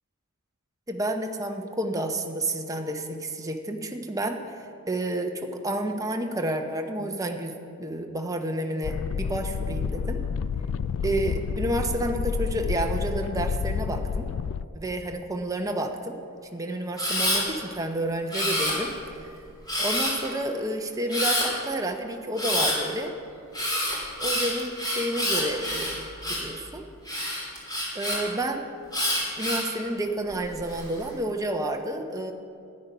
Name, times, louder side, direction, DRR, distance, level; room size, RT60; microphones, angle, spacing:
voice 1, 0.9-4.4 4.9-10.2 11.0-14.3 14.7-16.2 16.5-18.9 19.8-23.1 24.2-26.0 26.3-26.8 27.9-28.6 29.4-32.3, right 1 dB, 15° right, 3 dB, 0.8 m, -30 dB
sound 1, 8.8-14.6, left 6 dB, 60° left, 0.3 m, -29 dB
Camera, 17.0-17.4 18.3-19.1 19.7-20.3 21.1-21.5 22.4-22.8 23.5-26.5 27.1-28.2 28.9-29.7 30.3-30.8, left 1 dB, 20° left, 3.1 m, -27 dB
13.0 x 9.6 x 5.5 m, 2.4 s
head